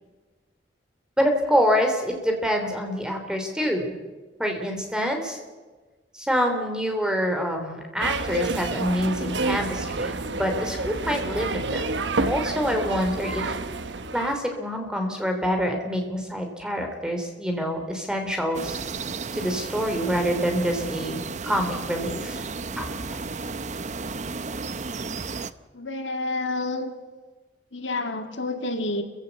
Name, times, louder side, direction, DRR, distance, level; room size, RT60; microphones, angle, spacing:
voice 1, 1.2-3.9 4.4-5.4 6.1-11.8 12.2-13.6 14.1-18.8 19.3-22.5 22.8-22.9, equal, 5° right, 4 dB, 3.3 m, -26 dB
sound 1, 8.0-14.4, right 3 dB, 75° right, 1.1 m, -29 dB
sound 2, 18.5-25.5, right 4 dB, 40° right, 0.7 m, -33 dB
voice 2, 25.7-26.9 27.7-29.0, left 2 dB, 85° left, 6 dB, 2.3 m, -29 dB
28.5 x 16.0 x 8.3 m, 1.3 s
head